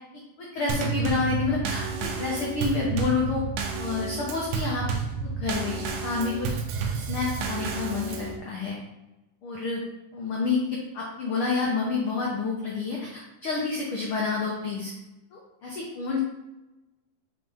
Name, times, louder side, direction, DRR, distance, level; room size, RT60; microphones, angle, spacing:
voice 1, 0.4-1.9 2.1-3.4 3.8-4.9 5.2-6.5 6.9-8.8 9.4-9.8 10.1-14.9 15.3-16.2, left 4 dB, 80° left, -3 dB, 1.2 m, -29 dB
Drum kit / Snare drum / Bass drum, 0.7-8.4, right 5 dB, 75° right, 1.8 m, -31 dB
6.0 x 5.0 x 3.5 m, 1.0 s
omnidirectional pair, 3.8 m